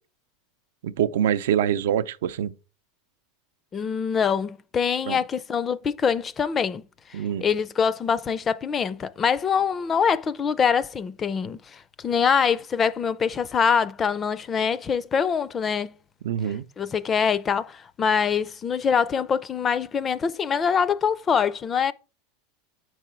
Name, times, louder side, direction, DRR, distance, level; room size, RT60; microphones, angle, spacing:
voice 1, 0.8-2.5 5.1-5.2 7.1-7.4 16.2-16.6, right 9 dB, 80° right, 0.5 m, -25 dB
voice 2, 3.7-6.8 7.1-15.9 16.8-21.9, left 6 dB, 20° left, 0.4 m, -24 dB
7.5 x 4.7 x 4.3 m
supercardioid pair, 155°, 0 cm